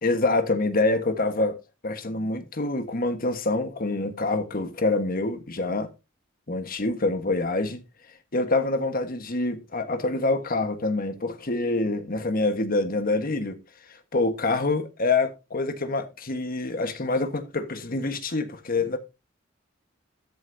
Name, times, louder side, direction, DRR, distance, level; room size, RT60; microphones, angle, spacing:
voice 1, 0.0-1.6 1.8-5.9 6.5-7.8 8.3-13.6 13.9-19.0, left 2 dB, 50° left, 1.4 m, -26 dB
13.0 x 8.2 x 2.7 m
head